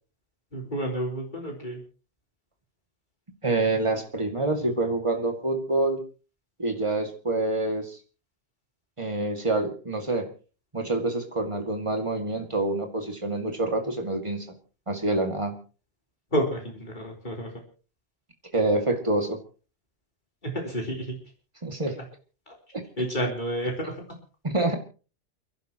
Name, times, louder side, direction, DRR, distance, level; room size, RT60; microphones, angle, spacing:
voice 1, 0.5-1.8 16.3-17.5 20.4-21.2 22.5-22.6 23.0-24.0, equal, 40° left, 0 dB, 4.0 m, -30 dB
voice 2, 3.4-6.0 6.6-8.0 9.0-10.3 10.7-14.5 14.9-15.6 18.5-19.4 21.6-22.0 24.4-24.8, right 2 dB, 25° right, 4 dB, 2.3 m, -26 dB
29.5 x 11.0 x 3.0 m, 0.36 s
omnidirectional pair, 1.2 m